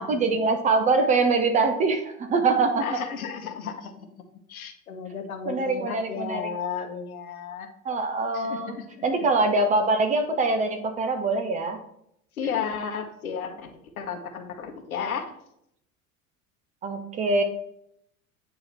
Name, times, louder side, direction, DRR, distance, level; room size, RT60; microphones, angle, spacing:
voice 1, 0.0-2.9 5.5-6.5 7.8-8.8 9.0-11.8 16.8-17.4, right 3 dB, 20° right, 6 dB, 0.4 m, -23 dB
voice 2, 2.8-3.9 4.5-7.7 8.3-8.8 12.4-13.7 14.0-15.2, left 7 dB, 75° left, 5 dB, 1.0 m, -33 dB
8.5 x 2.9 x 4.2 m, 0.74 s
figure-of-eight pair, 75°, 43 cm